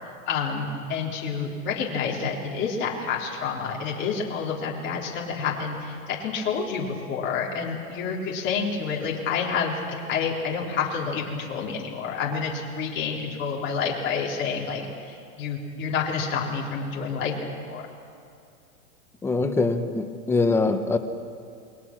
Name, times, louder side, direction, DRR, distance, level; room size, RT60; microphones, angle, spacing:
voice 1, 0.3-9.8 10.1-17.3 17.7-17.8, left 5 dB, 25° left, -3 dB, 3.8 m, -28 dB
voice 2, 19.2-21.0, left 3 dB, 5° left, 6 dB, 0.6 m, -23 dB
29.0 x 21.5 x 6.1 m, 2.5 s
supercardioid pair, 155°, 42 cm